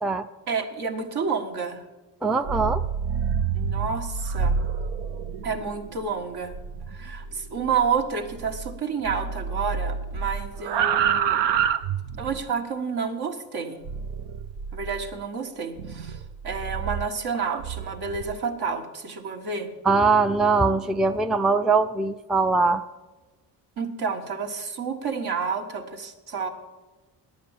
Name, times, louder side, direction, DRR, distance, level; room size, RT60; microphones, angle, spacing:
voice 1, 0.5-1.8 3.5-4.5 5.4-6.5 6.9-11.4 12.2-13.8 14.7-19.7 23.8-26.5, right 5 dB, 60° right, 4 dB, 1.7 m, -30 dB
voice 2, 2.2-2.8 19.8-22.8, right 4 dB, ahead, 9 dB, 0.4 m, -21 dB
sound 1, 2.3-8.8 9.0-12.4 13.8-15.1 15.8-18.4, right 7 dB, 80° right, 0.8 m, -29 dB
10.5 x 8.8 x 7.3 m, 1.2 s
cardioid pair, 90°, 42 cm